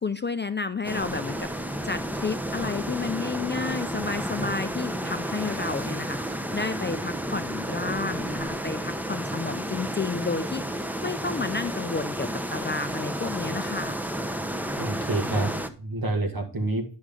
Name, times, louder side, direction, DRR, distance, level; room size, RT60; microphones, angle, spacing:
voice 1, 0.0-14.0, left 4 dB, 25° left, 11 dB, 0.4 m, -31 dB
sound 1, 0.8-15.7, right 1 dB, 5° right, 0.7 m, -31 dB
voice 2, 14.8-16.9, right 2 dB, 55° right, 4 dB, 2.2 m, -28 dB
9.5 x 6.1 x 3.7 m, 0.37 s
wide cardioid pair, 85°, 43 cm